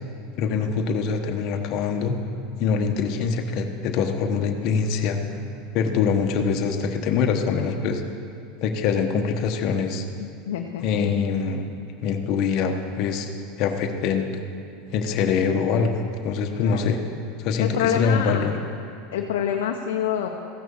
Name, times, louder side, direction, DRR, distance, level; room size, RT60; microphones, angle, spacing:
voice 1, 0.4-2.2 2.6-5.2 5.7-8.0 8.6-10.0 10.8-11.7 12.0-13.3 13.6-14.3 14.9-17.0 17.4-18.6, left 6 dB, 50° left, 4 dB, 1.1 m, -24 dB
sound 1, 2.3-7.1, left 1 dB, 15° right, 1.7 m, -42 dB
voice 2, 10.5-10.8 16.6-16.8 17.6-18.6 19.1-20.3, left 9 dB, 85° left, 1 dB, 0.8 m, -26 dB
15.0 x 6.3 x 7.1 m, 2.5 s
supercardioid pair, 120°, 0 cm